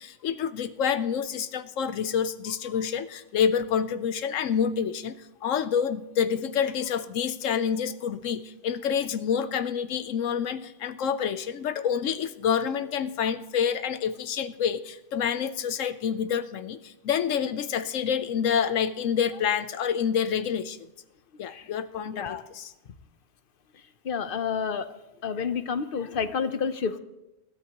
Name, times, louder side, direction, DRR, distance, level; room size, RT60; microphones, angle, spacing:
voice 1, 0.0-20.9 21.4-22.7, left 7 dB, 80° left, 12 dB, 1.1 m, -28 dB
voice 2, 24.1-24.9 25.2-27.0, left 6 dB, 50° left, 11 dB, 0.9 m, -29 dB
20.5 x 13.0 x 3.0 m, 1.0 s
omnidirectional pair, 1.3 m